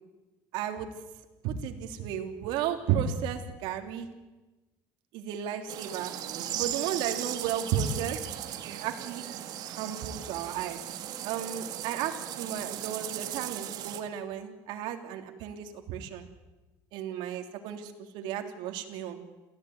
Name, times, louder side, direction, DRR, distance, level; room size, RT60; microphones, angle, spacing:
voice 1, 0.5-0.9 1.4-4.1 5.1-6.1 6.5-8.2 8.7-9.2 9.7-10.8 11.2-16.3 16.9-19.2, right 9 dB, 75° right, 5 dB, 3.3 m, -33 dB
sound 1, 5.7-14.0, right 11 dB, 55° right, 2.4 m, -37 dB
29.0 x 15.5 x 9.6 m, 1.1 s
cardioid pair, 140°, 8 cm